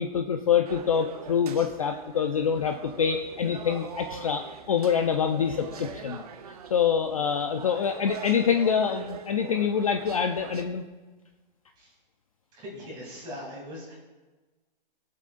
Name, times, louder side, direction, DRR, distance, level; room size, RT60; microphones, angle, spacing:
voice 1, 0.0-6.2 6.7-10.8, left 7 dB, 40° left, 6 dB, 0.4 m, -26 dB
sound 1, 0.7-10.6, right 6 dB, 40° right, 0.7 m, -42 dB
voice 2, 12.5-13.9, left 1 dB, 15° right, -4 dB, 2.9 m, -40 dB
19.0 x 7.5 x 2.5 m, 1.2 s
hypercardioid pair, 170°, 29 cm